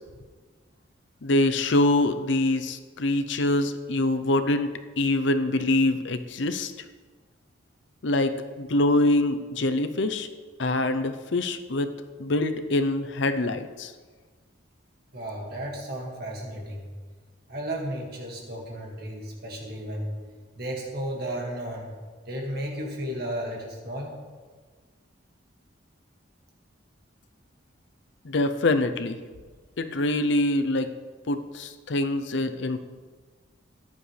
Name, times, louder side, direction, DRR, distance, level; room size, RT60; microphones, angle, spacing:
voice 1, 1.2-4.7 5.0-6.7 8.0-10.3 10.6-11.9 12.2-13.9 28.3-29.2 29.8-30.9 31.3-32.8, left 2 dB, 65° left, 9 dB, 0.6 m, -24 dB
voice 2, 15.1-16.9 17.5-20.1 20.6-21.9 22.3-24.1, right 1 dB, 50° right, 0 dB, 2.0 m, -34 dB
14.5 x 10.5 x 3.3 m, 1.4 s
head